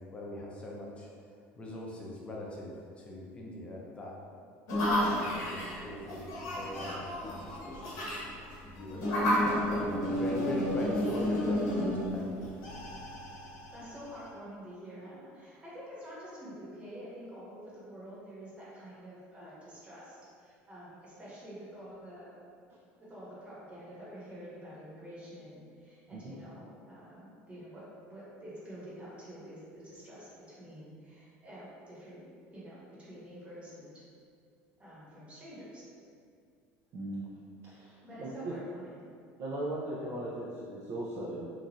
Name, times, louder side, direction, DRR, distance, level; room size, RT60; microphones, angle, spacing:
voice 1, 0.1-1.1 1.5-4.2 5.1-8.1 8.7-12.5, left 1 dB, 20° left, -3 dB, 0.5 m, -41 dB
sound 1, 4.7-14.3, left 1 dB, 65° left, 0.8 m, -32 dB
voice 2, 13.7-22.4 23.0-34.0 34.8-35.9 38.0-39.0, equal, 20° right, -8 dB, 1.0 m, -48 dB
voice 3, 36.9-37.3 37.6-38.6 39.4-41.5, right 1 dB, 50° right, -6 dB, 0.4 m, -38 dB
3.0 x 2.4 x 2.6 m, 2.3 s
supercardioid pair, 120°, 6 cm